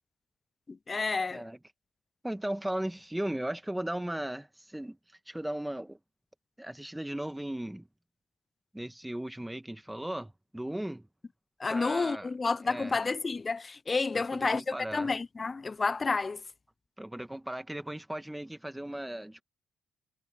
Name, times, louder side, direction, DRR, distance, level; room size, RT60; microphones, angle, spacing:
voice 1, 0.7-1.5 11.6-16.4, left 4 dB, 30° left, 0.4 m, -30 dB
voice 2, 2.2-5.0 5.3-6.0 6.6-7.9 8.7-11.1 11.7-12.3 12.6-13.0 14.1-15.1 17.0-19.4, right 1 dB, 5° right, 1.7 m, -37 dB
cardioid pair, 90°, 0 cm